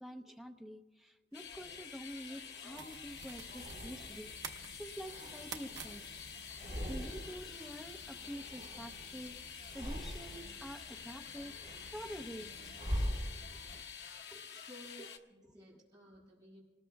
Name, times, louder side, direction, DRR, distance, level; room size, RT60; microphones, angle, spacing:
voice 1, 0.0-6.0 6.9-12.5 14.3-14.6 15.5-15.6, equal, ahead, 4 dB, 0.7 m, -48 dB
sound 1, 1.3-15.2, left 7 dB, 60° left, 1.1 m, -49 dB
sound 2, 1.5-2.8 3.4-4.4 4.8-6.1 6.4-7.5 7.8-9.2 9.6-10.6 11.1-13.8, equal, 45° right, 4.7 m, -43 dB
sound 3, 2.7-13.8, right 4 dB, 80° right, 1.0 m, -53 dB
voice 2, 14.4-16.6, equal, 25° right, -5 dB, 6.7 m, -56 dB
27.5 x 20.0 x 2.3 m, 1.3 s
head